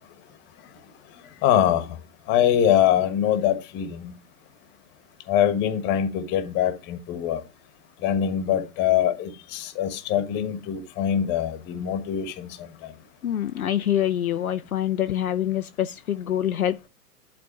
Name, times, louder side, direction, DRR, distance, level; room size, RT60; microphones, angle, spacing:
voice 1, 1.4-1.8 2.3-4.1 5.3-7.4 8.0-12.5, left 10 dB, 25° left, 1.3 m, -23 dB
voice 2, 13.2-16.9, left 11 dB, 65° left, 0.6 m, -25 dB
10.5 x 4.2 x 5.6 m
figure-of-eight pair, 110°, 46 cm